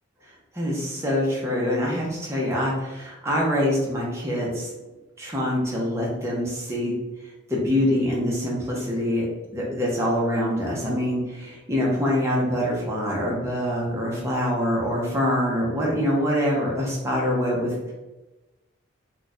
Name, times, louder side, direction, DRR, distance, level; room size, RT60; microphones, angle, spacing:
voice 1, 0.5-4.7 5.2-6.9 7.5-9.3 9.5-17.9, equal, 15° right, -4 dB, 0.7 m, -25 dB
2.5 x 2.3 x 4.0 m, 1.1 s
head